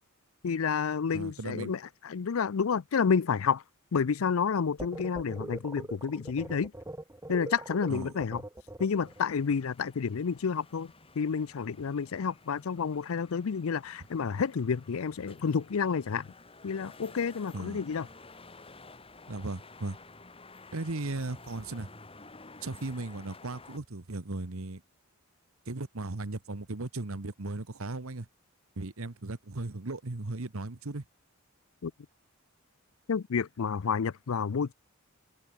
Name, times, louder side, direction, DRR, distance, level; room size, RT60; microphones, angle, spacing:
voice 1, 0.4-3.6 3.9-6.7 7.3-8.4 8.8-16.3 16.6-18.1 31.8-31.9 33.1-34.7, left 6 dB, 70° left, 0.5 m, -30 dB
voice 2, 1.1-1.7 7.9-8.1 17.5-17.8 19.3-20.0 20.7-21.9 22.6-24.8 25.7-28.3 28.8-31.0, right 2 dB, 70° right, 1.2 m, -37 dB
sound 1, 4.8-9.2, right 1 dB, 15° right, 0.9 m, -42 dB
sound 2, 8.9-23.8, left 3 dB, 25° left, 4.2 m, -53 dB
head